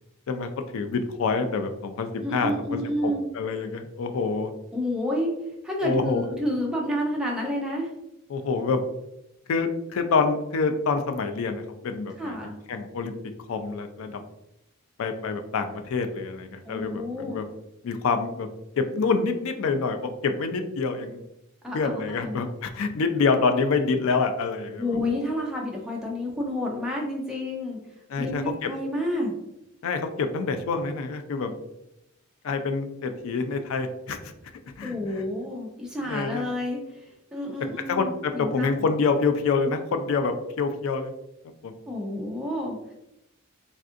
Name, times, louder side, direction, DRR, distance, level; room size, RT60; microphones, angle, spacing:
voice 1, 0.3-4.5 5.8-6.2 8.3-8.8 9.5-12.4 12.7-13.1 13.5-14.2 15.0-17.4 17.8-18.5 18.8-21.2 21.7-24.8 28.1-28.7 29.8-31.5 32.4-34.2 34.8-34.9 36.0-36.4 37.9-41.1 41.6-41.7, left 4 dB, 70° left, 7 dB, 0.3 m, -26 dB
voice 2, 2.2-3.3 4.7-5.3 5.6-7.9 12.2-12.5 16.6-17.5 21.6-22.4 24.8-27.8 28.2-29.3 34.8-37.0 37.3-38.9 41.9-42.9, left 1 dB, 5° right, -2 dB, 0.5 m, -30 dB
3.5 x 2.4 x 2.5 m, 0.87 s
head